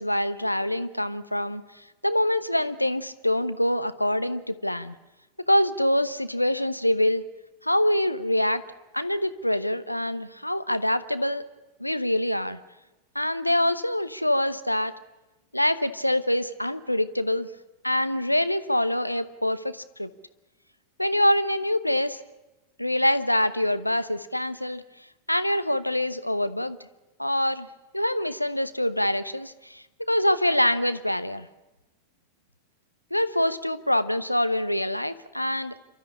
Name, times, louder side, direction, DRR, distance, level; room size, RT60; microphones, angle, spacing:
voice 1, 0.0-4.9 5.4-7.2 7.6-8.6 8.9-11.5 11.8-12.6 13.1-14.9 15.5-17.5 17.8-20.1 21.0-22.2 22.8-24.8 25.3-26.8 27.2-27.7 27.9-31.5 33.1-35.8, left 1 dB, 90° left, 13 dB, 1.0 m, -25 dB
28.0 x 13.0 x 9.8 m, 1.0 s
figure-of-eight pair, 90°, 0 cm